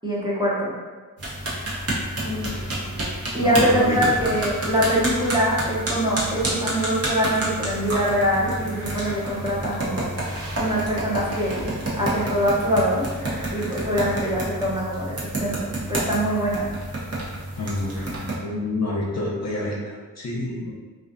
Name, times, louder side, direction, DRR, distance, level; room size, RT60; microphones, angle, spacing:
voice 1, 0.0-0.7 3.3-10.1 10.6-11.5 12.0-13.0 13.5-16.7, equal, 10° right, -6 dB, 0.7 m, -23 dB
sound 1, 1.2-18.4, right 1 dB, 40° right, 0.8 m, -29 dB
voice 2, 2.2-2.8 3.4-4.0 17.5-20.7, left 2 dB, 45° left, -4 dB, 0.6 m, -28 dB
2.4 x 2.3 x 2.5 m, 1.4 s
cardioid pair, 50°, 35 cm